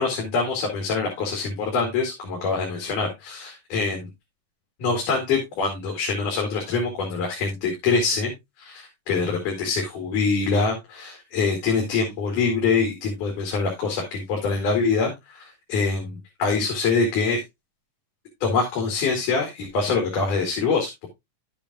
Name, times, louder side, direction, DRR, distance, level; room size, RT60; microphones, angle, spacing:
voice 1, 0.0-4.1 4.8-8.3 8.6-17.4 18.4-21.1, left 4 dB, 85° left, 0 dB, 3.6 m, -24 dB
11.0 x 8.7 x 2.4 m, 0.20 s
omnidirectional pair, 3.6 m